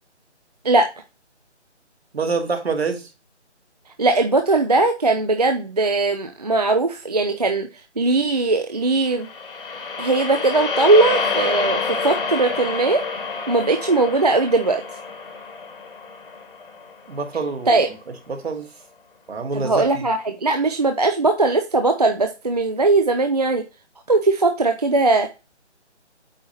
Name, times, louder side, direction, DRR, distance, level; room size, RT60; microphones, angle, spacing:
voice 1, 2.1-3.1 17.1-17.8 18.3-18.7 19.3-20.1, right 4 dB, 60° right, 5 dB, 1.7 m, -26 dB
voice 2, 4.0-7.7 8.0-9.3 10.0-13.0 13.5-14.8 17.7-17.9 19.5-23.6 24.1-25.3, right 3 dB, 35° right, 6 dB, 0.5 m, -19 dB
sound 1, 9.1-17.4, left 4 dB, 50° left, 1.6 m, -28 dB
8.6 x 3.1 x 4.3 m, 0.29 s
figure-of-eight pair, 160°, 35 cm